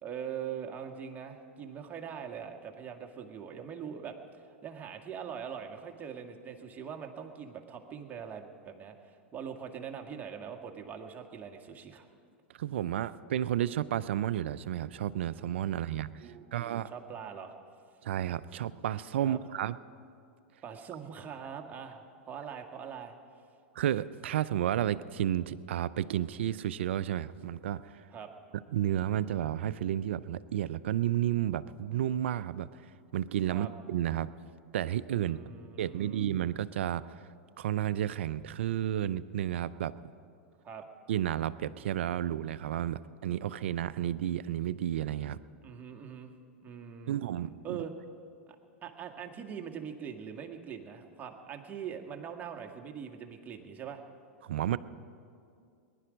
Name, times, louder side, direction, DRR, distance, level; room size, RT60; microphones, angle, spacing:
voice 1, 0.0-12.1 15.8-17.5 19.2-19.4 20.6-23.1 28.1-28.3 33.5-33.7 35.2-36.3 40.6-40.9 45.6-46.3 46.6-47.9 48.5-48.6 48.8-54.0, right 7 dB, 25° right, 2 dB, 1.6 m, -42 dB
voice 2, 12.6-16.1 16.5-16.9 18.0-19.8 23.7-28.0 28.7-32.7 33.1-34.3 34.7-35.4 35.8-37.1 37.6-39.9 41.1-45.4 47.1-47.8 54.4-54.8, right 11 dB, 70° right, 16 dB, 0.5 m, -31 dB
20.5 x 11.0 x 5.2 m, 2.4 s
hypercardioid pair, 100°, 7 cm